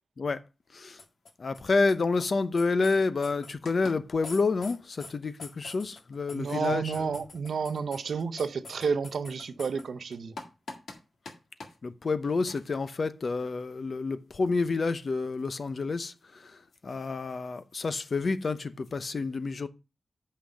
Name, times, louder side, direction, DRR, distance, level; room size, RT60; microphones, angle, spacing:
sound 1, 1.0-1.6 1.9-2.0 2.2-2.3 2.6-3.9 4.2-5.1 5.4-9.9 10.1-11.0 11.3-11.4 11.6-11.7 12.5-12.7 14.5-14.6 16.7-17.1 17.8-17.9 18.1-18.2 18.8-18.9, left 3 dB, 85° left, 1.7 m, -44 dB
voice 1, 1.4-7.2 11.8-19.7, left 3 dB, 50° left, 0.7 m, -29 dB
voice 2, 6.3-10.3, right 5 dB, 85° right, 0.7 m, -31 dB
6.6 x 5.8 x 6.4 m
wide cardioid pair, 145°, 0 cm